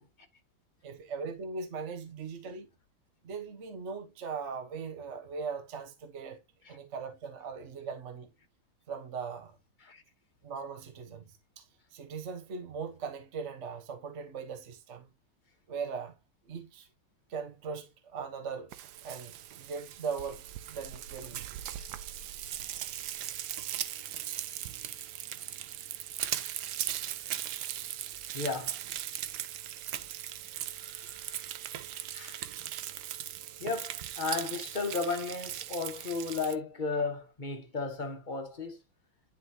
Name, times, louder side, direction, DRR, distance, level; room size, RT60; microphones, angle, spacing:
voice 1, 0.8-2.7 3.2-6.4 6.7-8.3 8.9-9.5 10.4-11.6 11.9-15.1 15.7-16.2 16.5-16.9 17.3-18.7 19.0-21.6, right 5 dB, 45° right, 1.3 m, -39 dB
Frying (food), 18.7-36.6, right 12 dB, 70° right, 1.1 m, -39 dB
voice 2, 28.3-28.8 30.7-31.4 32.1-32.5 33.6-38.8, left 4 dB, 25° left, 1.3 m, -35 dB
11.0 x 3.9 x 2.9 m
omnidirectional pair, 2.1 m